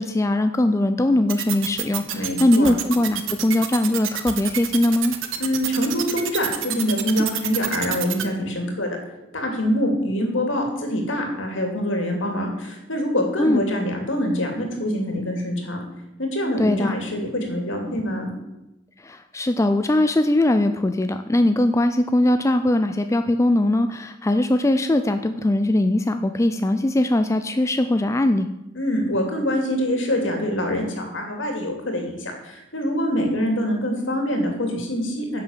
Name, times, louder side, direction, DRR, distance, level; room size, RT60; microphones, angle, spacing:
voice 1, 0.0-5.1 13.4-13.6 16.6-16.9 19.0-28.5, left 1 dB, 15° left, 8 dB, 0.4 m, -20 dB
sound 1, 1.3-8.2, right 11 dB, 75° right, 1.1 m, -28 dB
voice 2, 2.1-2.7 5.4-9.0 9.3-15.8 16.2-18.3 28.7-35.4, equal, 65° left, 2 dB, 2.8 m, -25 dB
10.5 x 6.7 x 7.4 m, 0.93 s
head